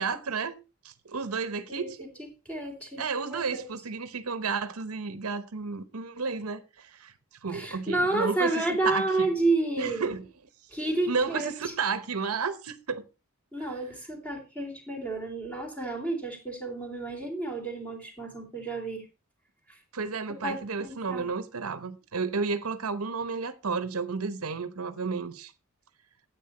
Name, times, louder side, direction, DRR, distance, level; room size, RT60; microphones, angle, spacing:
voice 1, 0.0-2.1 3.0-7.1 7.4-9.3 9.8-10.3 11.1-13.0 19.9-25.5, right 5 dB, 85° right, 0.9 m, -32 dB
voice 2, 1.7-2.1 2.4-3.0 3.3-3.7 7.5-10.1 10.7-11.5 13.5-19.0 19.7-19.8 20.4-21.3, right 2 dB, 5° left, 3.3 m, -30 dB
9.6 x 8.3 x 4.1 m
head